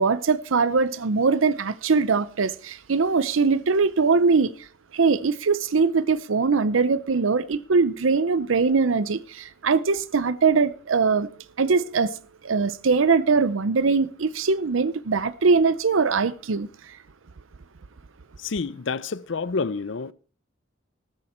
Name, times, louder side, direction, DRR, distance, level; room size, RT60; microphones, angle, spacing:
voice 1, 0.0-4.5 4.9-11.3 11.6-12.1 12.4-16.7, right 4 dB, 80° right, 0.6 m, -21 dB
voice 2, 18.4-20.1, left 4 dB, 65° left, 0.6 m, -28 dB
14.0 x 13.0 x 4.3 m
head